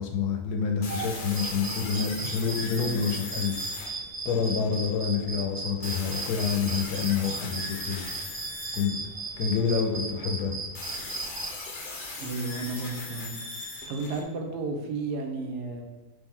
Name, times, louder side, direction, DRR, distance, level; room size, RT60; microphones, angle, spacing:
voice 1, 0.0-3.6 4.2-8.0 8.7-9.0 9.4-10.6, left 6 dB, 80° left, 3 dB, 1.2 m, -28 dB
sound 1, 0.8-5.0 5.8-9.9 10.8-14.2, left 2 dB, 50° left, 0.6 m, -39 dB
sound 2, 0.9-2.1 2.9-4.1 4.9-5.4 5.8-6.3 7.0-8.3 9.1-9.5, right 3 dB, 50° right, 1.0 m, -46 dB
sound 3, 1.3-11.5, right 3 dB, 65° right, 0.5 m, -36 dB
voice 2, 12.2-13.4 13.8-15.8, right 3 dB, 90° right, 3 dB, 1.2 m, -32 dB
3.3 x 3.2 x 3.5 m, 1.3 s
omnidirectional pair, 1.7 m